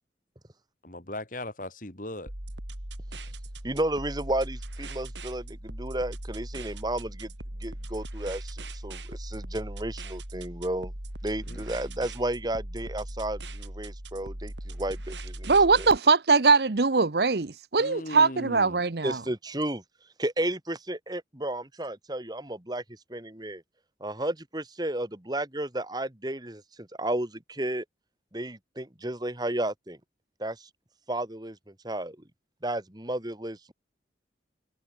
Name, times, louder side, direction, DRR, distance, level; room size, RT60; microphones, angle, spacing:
voice 1, 0.8-2.3 11.5-11.7 17.8-18.8, left 1 dB, 50° left, 3.4 m, -38 dB
sound 1, 2.3-16.0, right 1 dB, 85° right, 4.0 m, -39 dB
voice 2, 3.6-7.3 7.6-10.9 11.2-15.9 19.0-19.8 20.2-22.8 23.1-23.6 24.0-27.8 28.3-30.0 30.4-30.7 31.1-31.6 31.8-32.2 32.6-33.7, right 1 dB, 25° right, 2.2 m, -33 dB
voice 3, 15.5-19.2, right 4 dB, 65° right, 0.9 m, -21 dB
head